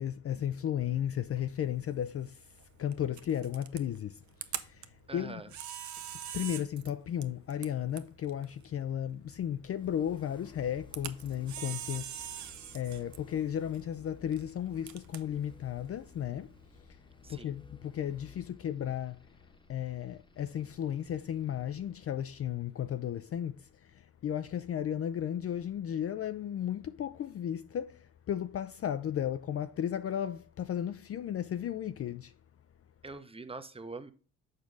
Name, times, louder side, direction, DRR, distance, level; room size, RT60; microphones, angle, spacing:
voice 1, 0.0-2.5 2.8-5.4 6.3-12.5 12.7-16.5 16.9-17.0 17.3-19.2 19.7-32.3, left 10 dB, 40° left, 0.4 m, -34 dB
Camera, 1.3-16.8, right 10 dB, 55° right, 0.7 m, -46 dB
voice 2, 5.1-5.5 17.2-17.5 33.0-34.1, right 3 dB, 15° right, 0.8 m, -43 dB
sound 1, 9.7-23.6, left 5 dB, 15° left, 1.0 m, -57 dB
6.6 x 4.6 x 3.9 m
supercardioid pair, 55°, 35 cm